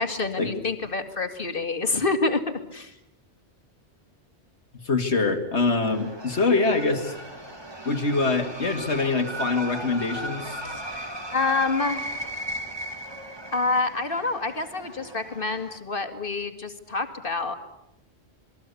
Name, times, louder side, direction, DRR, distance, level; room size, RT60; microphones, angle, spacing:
voice 1, 0.0-2.4 2.7-2.9 10.9-12.3 13.5-17.6, left 3 dB, 55° left, 7 dB, 2.4 m, -27 dB
voice 2, 4.8-7.2 7.8-10.6, left 3 dB, 80° left, 6 dB, 2.7 m, -24 dB
sound 1, 5.8-15.8, right 1 dB, 20° right, 2.6 m, -37 dB
27.0 x 22.0 x 8.5 m, 0.84 s
omnidirectional pair, 1.1 m